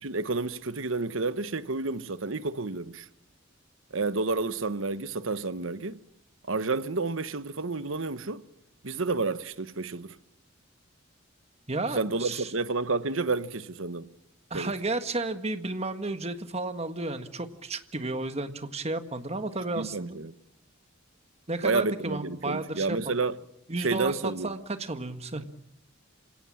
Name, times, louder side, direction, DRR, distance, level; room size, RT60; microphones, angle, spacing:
voice 1, 0.0-3.1 3.9-6.0 6.5-8.5 8.8-10.2 11.9-14.1 14.5-14.7 19.8-20.3 21.6-23.4 23.8-24.5, right 3 dB, 75° right, 1.1 m, -30 dB
voice 2, 11.7-12.5 14.5-20.2 21.5-23.2 23.7-25.4, right 2 dB, 30° right, 1.7 m, -32 dB
27.5 x 17.0 x 8.7 m
head